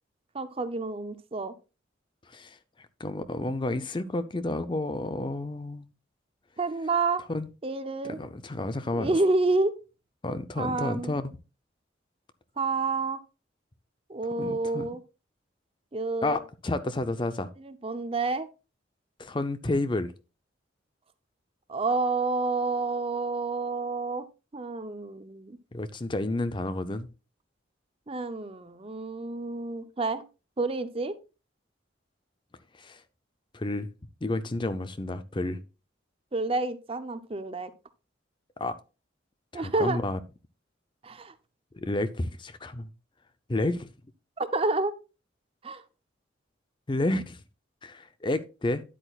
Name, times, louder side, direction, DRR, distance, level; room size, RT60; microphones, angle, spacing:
voice 1, 0.3-1.5 6.6-7.2 7.6-8.2 8.9-9.7 10.6-11.2 12.6-13.2 14.1-15.0 15.9-16.4 17.6-18.5 21.7-24.3 24.5-25.6 28.1-30.2 30.6-31.1 36.3-37.7 39.5-40.0 41.0-41.3 44.4-44.9 45.6-45.8, right 3 dB, 30° right, 0.6 m, -29 dB
voice 2, 2.3-2.6 3.0-5.9 7.3-7.5 8.0-9.1 10.2-11.3 14.4-14.9 16.2-17.5 19.2-20.1 25.7-27.1 32.7-33.0 33.5-33.9 34.2-35.6 38.6-38.8 39.5-40.2 41.7-42.9 43.5-43.9 46.9-47.4 47.8-48.8, left 2 dB, 25° left, 0.5 m, -30 dB
10.0 x 8.3 x 2.4 m
head